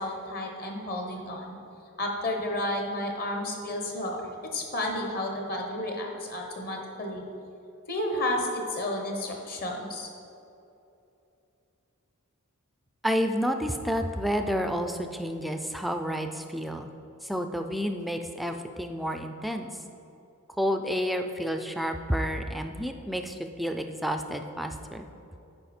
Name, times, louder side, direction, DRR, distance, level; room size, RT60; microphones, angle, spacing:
voice 1, 0.0-1.6 2.0-7.2 7.9-10.1, left 1 dB, 45° left, 2 dB, 1.1 m, -32 dB
voice 2, 13.0-16.9 17.2-19.7 20.6-25.1, equal, ahead, 6 dB, 0.3 m, -30 dB
8.9 x 5.4 x 4.3 m, 2.8 s
head